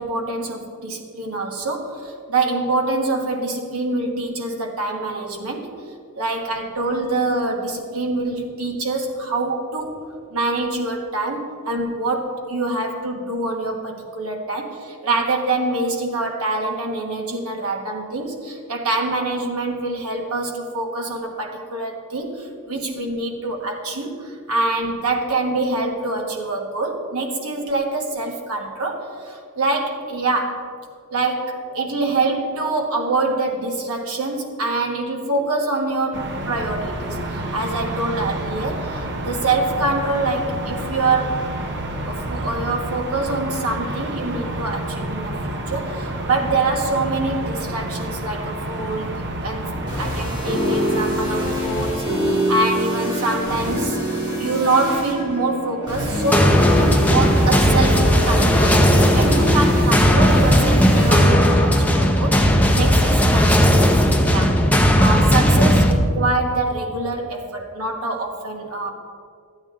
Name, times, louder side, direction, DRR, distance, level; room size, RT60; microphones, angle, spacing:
voice 1, 0.0-5.7 6.2-10.0 10.3-30.7 31.1-41.5 42.1-49.1 49.4-49.7 50.0-54.0 54.4-58.8 59.1-64.6 65.0-68.9, right 2 dB, 70° right, 1 dB, 1.4 m, -25 dB
sound 1, 36.1-51.6, right 1 dB, 55° right, 0.8 m, -29 dB
sound 2, 49.7-62.5, equal, 20° right, 2.9 m, -25 dB
sound 3, 56.3-65.9, equal, 5° left, 0.7 m, -16 dB
12.5 x 8.8 x 3.7 m, 2.2 s
head